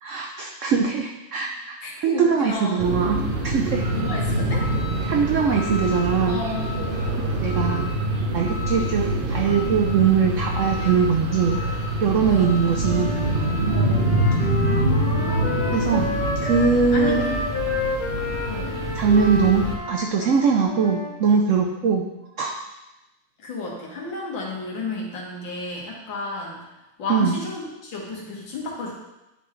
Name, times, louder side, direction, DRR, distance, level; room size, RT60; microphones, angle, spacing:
voice 1, 0.0-3.8 5.1-6.4 7.3-7.9 8.3-11.6 12.0-13.1 15.7-16.1 16.4-17.2 18.9-22.1 22.4-22.6 27.1-27.4, right 6 dB, 90° right, 1 dB, 0.6 m, -21 dB
voice 2, 1.8-2.8 3.9-4.6 6.3-7.1 12.2-12.5 13.6-14.0 14.6-16.1 16.9-17.3 18.5-18.8 23.4-26.6 27.0-28.9, left 3 dB, 90° left, -3 dB, 2.2 m, -32 dB
sound 1, 2.8-19.8, right 1 dB, 40° right, 0.9 m, -25 dB
Wind instrument woodwind instrument, 12.8-21.1, left 3 dB, 25° left, 1.5 m, -30 dB
10.5 x 3.9 x 3.2 m, 0.99 s
omnidirectional pair, 2.0 m